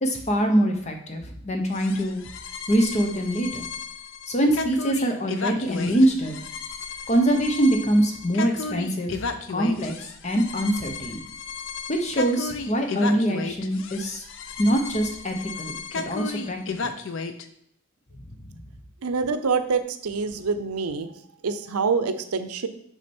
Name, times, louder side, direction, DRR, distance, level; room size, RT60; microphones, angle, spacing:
voice 1, 0.0-2.2 2.7-3.6 4.3-6.4 7.1-9.2 9.5-9.9 10.2-11.2 11.9-14.2 14.6-16.9, right 1 dB, 30° left, 4 dB, 0.9 m, -24 dB
sound 1, 1.7-17.4, left 4 dB, 55° left, 0.5 m, -34 dB
voice 2, 19.0-21.1 21.4-22.7, right 5 dB, 90° right, 11 dB, 0.6 m, -26 dB
6.2 x 5.0 x 4.4 m, 0.72 s
head